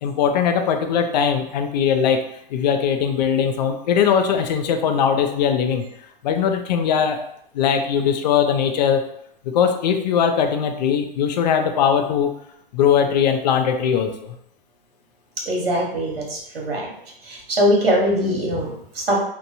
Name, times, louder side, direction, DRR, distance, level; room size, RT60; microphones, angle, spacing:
voice 1, 0.0-2.2 2.5-5.8 6.2-7.2 7.5-9.0 9.4-12.3 12.7-14.3, left 7 dB, 45° left, 6 dB, 0.4 m, -20 dB
voice 2, 15.5-16.9 17.2-19.2, equal, 90° right, -1 dB, 1.0 m, -22 dB
2.9 x 2.1 x 2.6 m, 0.73 s
hypercardioid pair, 130°, 29 cm